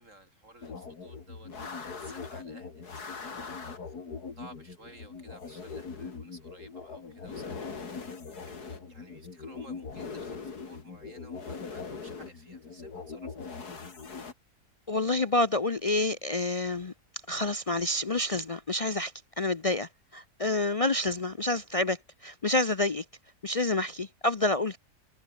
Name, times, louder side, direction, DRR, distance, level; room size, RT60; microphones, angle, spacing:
voice 1, 0.0-3.7 4.4-7.9 8.5-13.9, right 2 dB, 50° right, 8.0 m, -54 dB
sound 1, 0.6-14.3, left 5 dB, 80° left, 3.1 m, -41 dB
voice 2, 14.9-16.9 17.3-23.0 23.4-24.8, left 2 dB, 50° left, 0.4 m, -28 dB
omnidirectional pair, 1.7 m